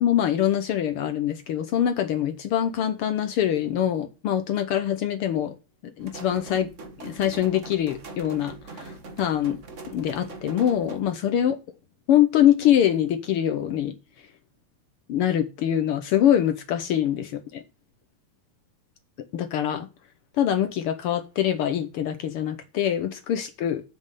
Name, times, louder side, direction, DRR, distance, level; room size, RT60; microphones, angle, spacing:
voice 1, 0.0-5.5 6.0-6.7 7.0-9.6 9.9-11.5 12.1-13.9 15.1-17.6 19.3-19.9 20.4-23.8, left 10 dB, 75° left, 1.3 m, -24 dB
sound 1, 6.0-11.0, right 3 dB, 65° right, 0.7 m, -41 dB
8.5 x 5.4 x 5.3 m
omnidirectional pair, 3.4 m